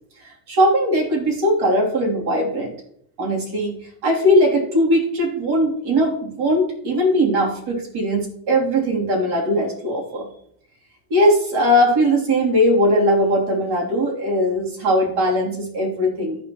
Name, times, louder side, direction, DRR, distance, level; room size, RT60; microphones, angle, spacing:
voice 1, 0.5-2.7 3.2-10.3 11.1-16.4, equal, 50° right, -2 dB, 3.1 m, -19 dB
14.0 x 6.0 x 3.0 m, 0.67 s
cardioid pair, 165°, 50 cm